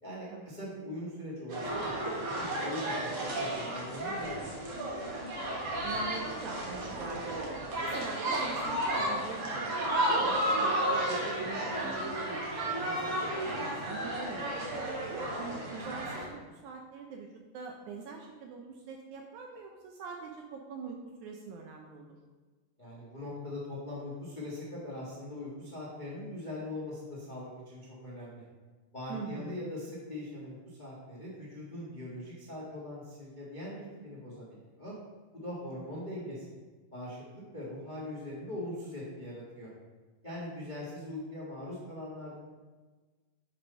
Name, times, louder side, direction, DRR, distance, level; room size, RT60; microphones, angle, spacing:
voice 1, 0.0-1.9 2.2-4.6 22.8-28.4 28.9-34.9 35.3-36.5 36.9-39.7 40.2-42.4, left 1 dB, 75° left, -6 dB, 0.4 m, -41 dB
sound 1, 1.5-16.3, right 1 dB, 55° right, 2.3 m, -33 dB
voice 2, 5.8-7.4 7.8-14.7 15.1-17.3 17.5-22.2 29.1-29.6 35.7-35.9, right 5 dB, 75° right, 2 dB, 1.8 m, -44 dB
7.4 x 4.7 x 5.3 m, 1.3 s
omnidirectional pair, 4.0 m